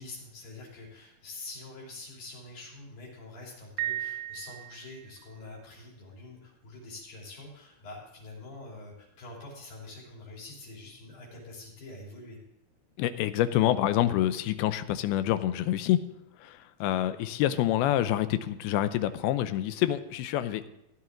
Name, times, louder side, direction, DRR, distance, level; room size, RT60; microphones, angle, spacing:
voice 1, 0.0-12.4 16.8-17.0, left 2 dB, 70° left, -3 dB, 4.9 m, -45 dB
Piano, 3.8-5.2, right 14 dB, 90° right, 2.5 m, -35 dB
voice 2, 13.0-16.0 16.4-20.7, left 13 dB, 90° left, 12 dB, 2.6 m, -27 dB
15.5 x 10.5 x 3.8 m, 0.84 s
omnidirectional pair, 4.3 m